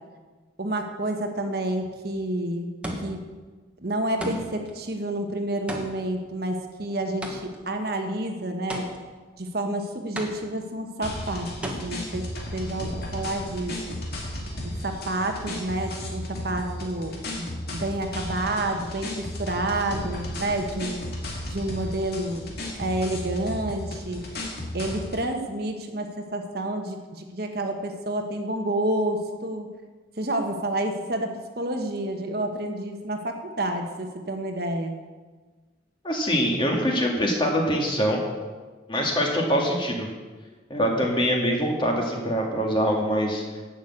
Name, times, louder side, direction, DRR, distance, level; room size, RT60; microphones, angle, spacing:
voice 1, 0.6-2.7 3.0-3.3 3.8-8.9 9.4-14.0 14.6-21.0 21.5-22.4 22.8-24.3 24.7-29.7 30.2-34.9, right 1 dB, 50° right, 4 dB, 1.2 m, -29 dB
sound 1, 1.8-2.2 2.8-3.4 4.2-4.7 5.7-7.7 8.7-9.3 10.2-10.8 11.6-11.7, equal, 5° right, 1.3 m, -35 dB
sound 2, 11.0-25.2, left 1 dB, 50° left, 2.3 m, -34 dB
voice 2, 36.0-38.2 38.9-40.1 40.7-43.4, equal, 25° left, 0 dB, 1.9 m, -24 dB
11.5 x 6.3 x 8.5 m, 1.3 s
head